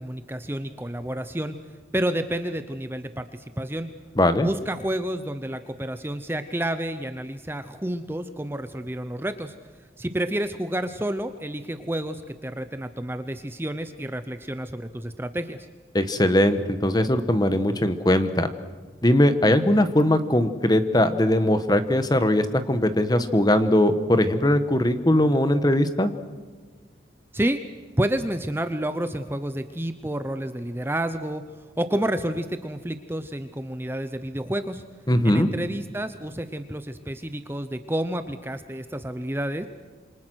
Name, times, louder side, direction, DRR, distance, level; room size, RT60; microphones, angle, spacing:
voice 1, 0.0-1.6 1.9-3.9 4.4-9.5 10.0-15.7 27.3-27.6 28.0-31.4 31.8-34.8 35.2-39.7, right 1 dB, 10° right, 9 dB, 0.7 m, -29 dB
voice 2, 4.2-4.5 15.9-18.5 19.0-26.1 35.1-35.5, left 1 dB, 20° left, 10 dB, 1.3 m, -20 dB
27.5 x 25.0 x 6.3 m, 1.4 s
head